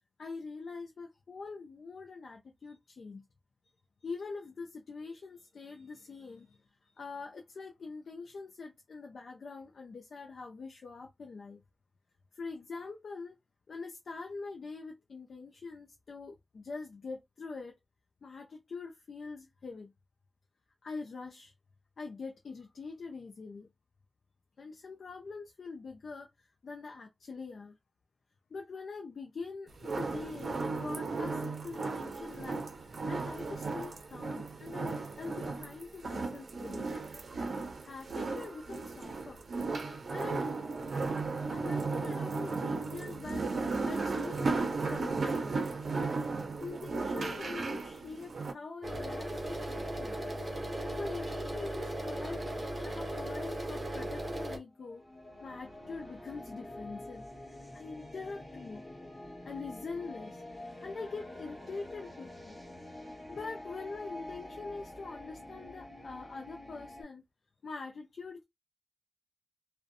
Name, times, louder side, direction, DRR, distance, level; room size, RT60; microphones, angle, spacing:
voice 1, 0.2-3.2 4.0-6.6 6.8-11.6 12.3-13.4 13.7-17.8 18.2-19.9 20.8-21.5 22.0-23.7 24.6-27.7 28.5-36.9 37.8-39.4 40.1-40.5 41.5-43.5 43.9-45.6 46.6-50.2 50.8-52.4 52.8-55.0 55.4-57.3 57.7-58.8 59.4-60.4 60.8-62.6 63.3-67.2 67.6-68.4, left 4 dB, 75° left, 0.4 m, -44 dB
sound 1, 29.8-48.5, right 3 dB, 70° right, 0.5 m, -35 dB
sound 2, 48.8-54.6, right 1 dB, 35° right, 0.7 m, -37 dB
sound 3, 54.7-67.0, left 1 dB, 15° left, 1.4 m, -47 dB
2.6 x 2.1 x 2.5 m
wide cardioid pair, 115°, 0 cm